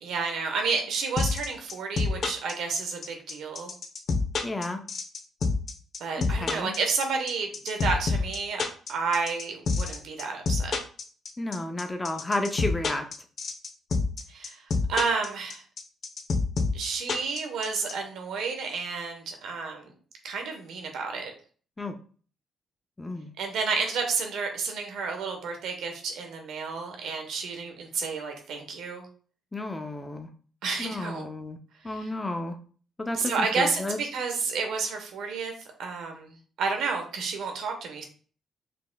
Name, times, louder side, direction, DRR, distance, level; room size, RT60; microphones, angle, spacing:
voice 1, 0.0-3.7 6.0-8.6 8.9-10.8 14.3-15.6 16.7-19.9 20.2-21.3 23.4-29.1 30.6-31.3 31.9-32.1 33.2-38.0, right 4 dB, 80° right, 4 dB, 1.1 m, -31 dB
sound 1, 1.2-17.9, left 4 dB, 55° left, 0.9 m, -27 dB
voice 2, 4.4-4.8 6.4-6.7 11.4-13.1 21.8-22.0 23.0-23.3 29.5-30.3 30.8-31.6 31.8-32.6 33.0-34.0, left 2 dB, 15° left, 6 dB, 0.6 m, -32 dB
5.1 x 3.3 x 2.3 m, 0.42 s
cardioid pair, 90°, 0 cm